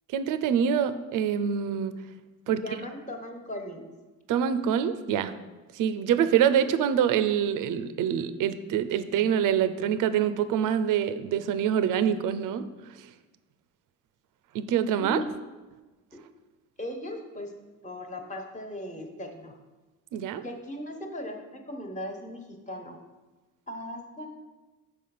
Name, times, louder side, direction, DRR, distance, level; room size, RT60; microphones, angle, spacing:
voice 1, 0.1-1.9 2.5-2.6 4.3-5.3 5.7-12.7 14.5-15.2 20.1-20.4, right 8 dB, 65° right, 12 dB, 0.6 m, -25 dB
voice 2, 2.5-3.9 15.0-15.3 16.1-16.2 16.8-17.5 17.8-19.5 20.4-22.9 23.7-24.3, left 1 dB, 20° left, 3 dB, 1.4 m, -38 dB
6.6 x 4.9 x 5.5 m, 1.2 s
supercardioid pair, 80°, 34 cm